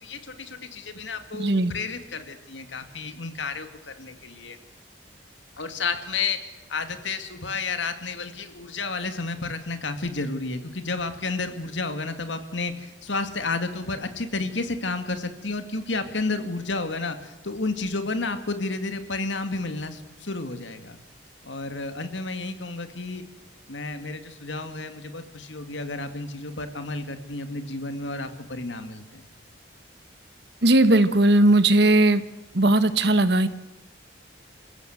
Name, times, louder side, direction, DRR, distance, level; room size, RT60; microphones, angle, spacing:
voice 1, 0.0-4.6 5.6-21.0 21.4-23.2 23.7-29.3, left 3 dB, 75° left, 8 dB, 2.3 m, -31 dB
voice 2, 1.4-1.7 30.6-32.2 32.5-33.5, right 2 dB, 60° right, 12 dB, 1.4 m, -18 dB
28.0 x 16.0 x 8.1 m, 0.94 s
head